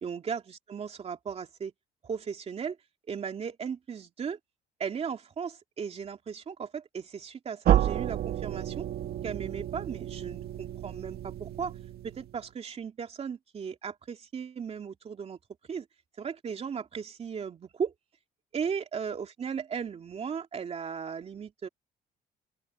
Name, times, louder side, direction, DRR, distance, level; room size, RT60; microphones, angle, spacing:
voice 1, 0.0-1.7 2.0-2.8 3.1-4.4 4.8-8.9 9.2-11.7 12.0-15.4 15.7-15.9 16.2-17.9 18.5-21.7, right 6 dB, 35° right, 2.8 m, -36 dB
sound 1, 7.6-12.5, right 12 dB, 65° right, 2.3 m, -30 dB
open air
cardioid pair, 110°, 17 cm